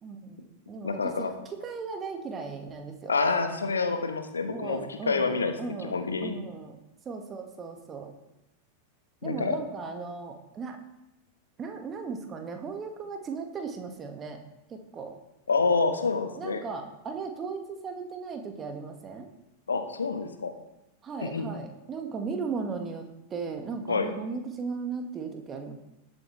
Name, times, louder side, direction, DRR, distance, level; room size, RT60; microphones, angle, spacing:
voice 1, 0.0-1.1 1.5-3.2 4.5-5.9 6.2-6.8 7.1-8.1 9.2-10.8 11.6-14.4 14.7-15.2 16.4-19.3 21.0-25.7, right 5 dB, 25° right, 4 dB, 1.8 m, -37 dB
voice 2, 0.8-1.3 3.1-5.5 5.8-6.4 9.2-9.6 15.5-16.6 19.7-20.5 21.3-21.5 23.9-24.1, left 4 dB, 75° left, 6 dB, 1.3 m, -27 dB
18.5 x 7.9 x 3.3 m, 0.91 s
figure-of-eight pair, 90°, 0 cm